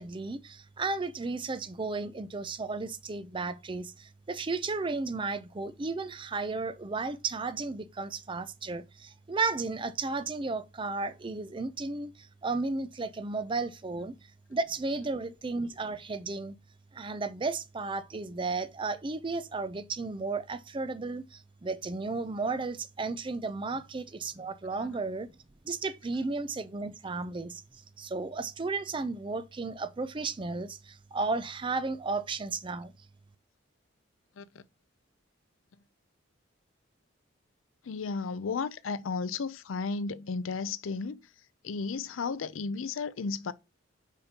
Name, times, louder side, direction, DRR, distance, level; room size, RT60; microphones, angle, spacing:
voice 1, 0.0-14.1 14.5-16.5 16.9-25.3 25.6-27.6 28.0-32.9, right 3 dB, 25° right, 0.5 m, -34 dB
voice 2, 37.8-41.3 41.6-43.5, left 4 dB, 90° left, 0.5 m, -34 dB
8.2 x 5.1 x 2.9 m
head